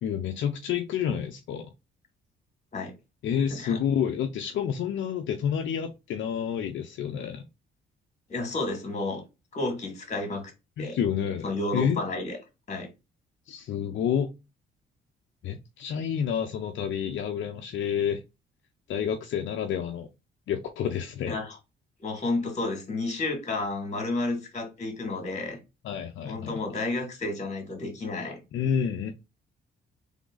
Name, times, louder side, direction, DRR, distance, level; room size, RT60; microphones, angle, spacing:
voice 1, 0.0-1.7 3.2-7.4 10.8-12.0 13.5-14.3 15.4-18.2 18.9-20.1 20.5-21.4 25.8-26.6 28.5-29.1, left 8 dB, 70° left, 0.7 m, -29 dB
voice 2, 3.5-3.8 8.3-9.2 9.5-10.5 10.8-11.0 11.4-12.4 12.7-12.9 21.2-21.6 22.0-25.6 26.3-28.4, left 2 dB, 35° left, 2.4 m, -31 dB
3.7 x 3.5 x 3.9 m
cardioid pair, 90°, 20 cm